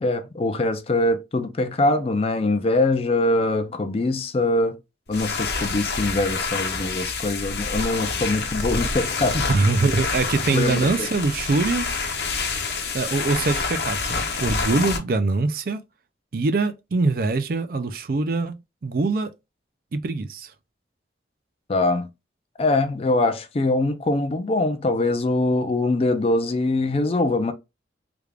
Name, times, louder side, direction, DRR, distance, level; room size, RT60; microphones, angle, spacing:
voice 1, 0.0-4.8 5.1-9.5 10.5-11.1 21.7-22.1 22.6-27.5, left 2 dB, 35° left, 0.4 m, -23 dB
sound 1, 5.1-15.0, left 4 dB, 65° left, 0.9 m, -27 dB
voice 2, 9.5-11.9 12.9-15.8 16.3-19.3 19.9-20.5, right 3 dB, 55° right, 0.4 m, -23 dB
3.4 x 2.4 x 3.3 m
head